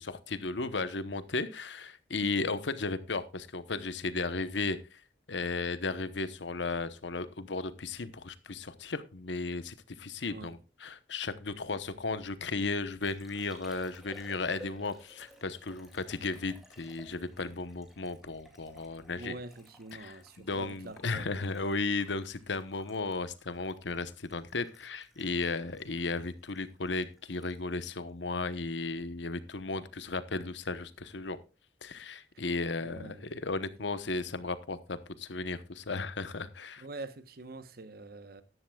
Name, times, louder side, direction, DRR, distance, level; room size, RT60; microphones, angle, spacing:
voice 1, 0.0-5.0 5.3-19.3 19.9-31.4 31.8-36.8, left 3 dB, 80° left, 1.0 m, -35 dB
voice 2, 10.2-10.6 19.1-21.7 32.8-33.2 33.8-34.3 36.8-38.4, right 2 dB, 55° right, 1.0 m, -46 dB
Liquid, 12.3-28.9 29.2-29.7, equal, ahead, 2.4 m, -58 dB
14.0 x 11.0 x 2.3 m
head